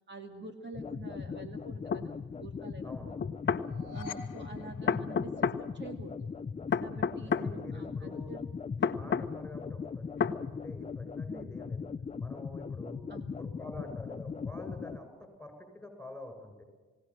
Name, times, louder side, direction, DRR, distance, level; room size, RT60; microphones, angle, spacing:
voice 1, 0.1-3.1 3.9-6.3 6.8-8.4 11.3-11.5 13.1-13.3, right 3 dB, 35° right, 5 dB, 2.4 m, -47 dB
sound 1, 0.7-15.0, left 5 dB, 20° left, 0.6 m, -39 dB
sound 2, 1.9-2.0 3.2-3.7 4.9-5.6 6.7-7.5 8.8-9.3 10.2-10.4, left 6 dB, 35° left, 1.1 m, -29 dB
sound 3, 3.5-5.8, left 4 dB, 85° left, 1.3 m, -48 dB
voice 2, 7.2-8.3 8.8-11.9 12.2-13.0 13.3-15.1 15.4-16.6, left 1 dB, 5° left, 6 dB, 7.7 m, -47 dB
21.0 x 17.5 x 7.6 m, 1.4 s
cardioid pair, 90°, 30 cm